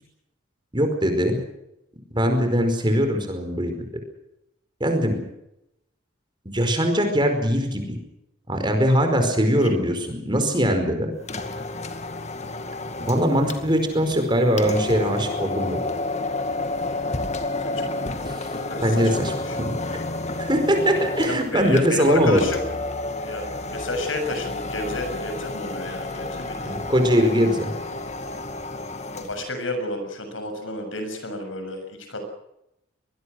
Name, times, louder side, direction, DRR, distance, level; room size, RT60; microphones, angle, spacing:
voice 1, 0.7-1.4 2.1-3.7 4.8-5.2 6.5-7.9 8.5-11.1 13.0-15.8 18.8-19.7 20.4-22.4 26.6-27.7, equal, 25° right, 5 dB, 4.9 m, -21 dB
sound 1, 11.2-29.4, left 2 dB, 35° left, 2.1 m, -31 dB
voice 2, 18.5-19.6 21.2-22.6 23.2-27.4 29.1-32.3, left 2 dB, 90° left, 7 dB, 6.9 m, -31 dB
25.0 x 20.5 x 6.4 m, 0.84 s
head